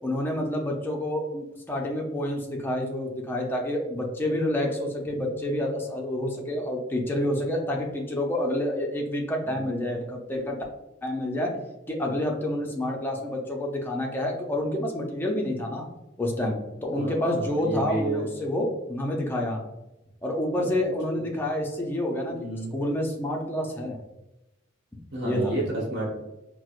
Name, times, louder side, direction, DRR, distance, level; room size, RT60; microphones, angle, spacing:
voice 1, 0.0-10.6 11.0-11.5 11.9-15.9 16.2-19.6 20.2-24.0 25.2-25.6, left 1 dB, 10° left, 0 dB, 0.5 m, -28 dB
voice 2, 16.9-18.2 20.6-20.8 21.1-21.4 22.3-22.7 25.1-26.1, right 2 dB, 60° right, -5 dB, 1.1 m, -31 dB
4.4 x 2.0 x 2.4 m, 0.96 s
head